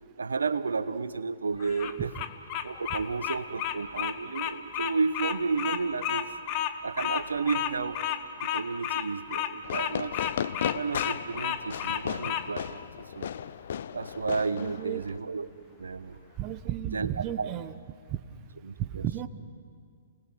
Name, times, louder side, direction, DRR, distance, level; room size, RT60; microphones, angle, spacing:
voice 1, 0.2-2.1 2.6-6.3 6.8-8.0 8.4-10.2 10.7-13.3 13.9-15.5 15.8-16.2 16.9-17.5 18.6-19.0, right 4 dB, 85° right, 12 dB, 1.0 m, -32 dB
Bird vocalization bird call bird song, 1.6-12.5, left 10 dB, 40° left, 1.3 m, -31 dB
Fireworks, 9.6-15.2, left 8 dB, 65° left, 0.6 m, -35 dB
voice 2, 14.6-15.0 16.4-17.8 18.1-18.2 18.8-19.3, right 12 dB, 35° right, 12 dB, 1.0 m, -33 dB
29.5 x 19.0 x 6.2 m, 2.1 s
hypercardioid pair, 125°, 0 cm